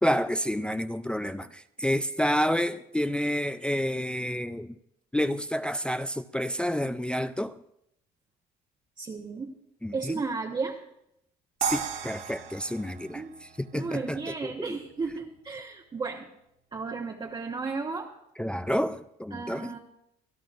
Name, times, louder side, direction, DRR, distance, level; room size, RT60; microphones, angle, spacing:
voice 1, 0.0-4.7 5.1-7.6 9.8-10.2 11.6-14.7 18.4-19.8, equal, 5° left, 0.4 m, -29 dB
voice 2, 9.0-9.5 9.9-10.8 13.1-13.3 13.7-16.3 16.7-18.1 19.3-19.8, right 4 dB, 25° right, 1.0 m, -34 dB
sound 1, 11.6-14.7, right 8 dB, 90° right, 2.3 m, -36 dB
26.5 x 10.5 x 2.5 m
cardioid pair, 110°, 17 cm